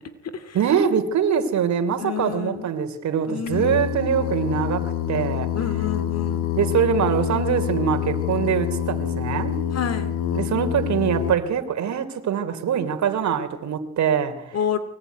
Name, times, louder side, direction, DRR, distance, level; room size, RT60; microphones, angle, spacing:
voice 1, 0.5-5.5 6.5-9.5 10.3-14.8, right 7 dB, 65° right, 8 dB, 3.5 m, -23 dB
voice 2, 2.0-2.7 3.3-3.8 5.5-6.5 9.7-10.2 14.5-14.8, left 8 dB, 55° left, 11 dB, 2.7 m, -29 dB
Singing, 3.5-11.4, left 10 dB, 85° left, 1.6 m, -26 dB
23.5 x 19.0 x 9.5 m, 0.90 s
cardioid pair, 90°, 30 cm